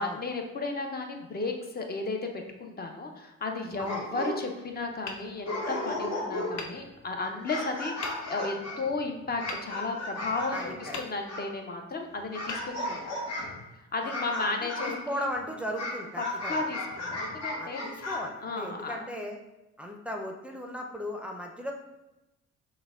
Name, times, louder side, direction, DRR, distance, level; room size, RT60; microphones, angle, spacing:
voice 1, 0.0-2.3 2.6-13.0 13.8-15.3 16.2-18.1 18.4-19.1, left 3 dB, 30° left, 3 dB, 0.7 m, -34 dB
sound 1, 3.7-4.6 5.1-5.2 5.4-6.7 7.2-11.5 12.3-13.6 14.1-15.0 15.8-18.2, left 2 dB, 55° left, 1.1 m, -35 dB
Hammer, 5.0-6.0 6.5-7.5 8.0-8.6 9.5-10.4 10.9-11.7 12.4-13.4, left 4 dB, 75° left, 0.6 m, -43 dB
voice 2, 10.5-11.0 14.0-16.5 17.6-19.4 19.8-21.7, equal, 5° right, 1 dB, 0.5 m, -37 dB
5.7 x 2.2 x 3.6 m, 1.0 s
cardioid pair, 90°, 30 cm